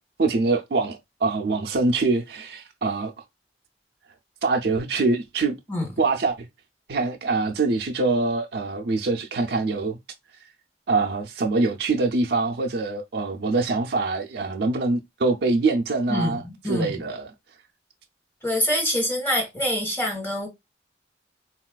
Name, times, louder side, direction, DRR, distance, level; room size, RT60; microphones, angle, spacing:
voice 1, 0.2-3.1 4.4-5.6 6.0-6.5 6.9-10.0 10.9-16.4 16.7-17.3, right 3 dB, 65° right, 0.4 m, -24 dB
voice 2, 16.1-16.9 18.4-20.5, left 1 dB, 15° left, 1.0 m, -25 dB
3.9 x 2.3 x 2.2 m
head